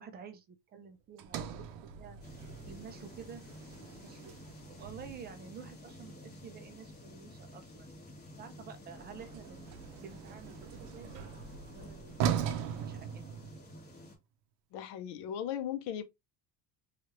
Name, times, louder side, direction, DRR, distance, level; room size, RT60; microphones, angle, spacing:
voice 1, 0.0-2.2 2.7-3.4 4.0-4.3 4.8-8.1 8.4-9.7 10.0-11.2 11.7-13.4, right 6 dB, 25° right, 0.4 m, -50 dB
Sliding door, 1.2-5.4 8.9-13.9, right 9 dB, 85° right, 0.6 m, -39 dB
sound 1, 2.2-14.2, left 1 dB, 20° left, 1.0 m, -51 dB
voice 2, 14.7-16.0, left 10 dB, 55° left, 0.6 m, -37 dB
3.0 x 2.4 x 2.8 m
cardioid pair, 130°, 48 cm